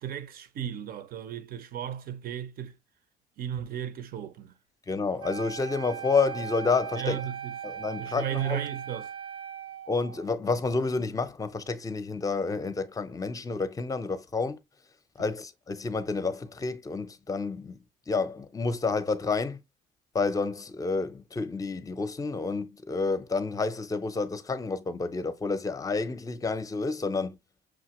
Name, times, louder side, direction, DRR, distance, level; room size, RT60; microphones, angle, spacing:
voice 1, 0.0-2.7 3.4-4.5 7.0-7.6 8.0-9.1, right 10 dB, 60° right, 0.8 m, -35 dB
voice 2, 4.9-7.2 7.6-8.6 9.9-14.6 15.2-19.6 20.1-27.4, left 4 dB, 20° left, 0.6 m, -29 dB
Wind instrument woodwind instrument, 5.2-10.3, right 9 dB, 30° right, 0.5 m, -39 dB
6.2 x 2.7 x 2.9 m
cardioid pair, 110°, 17 cm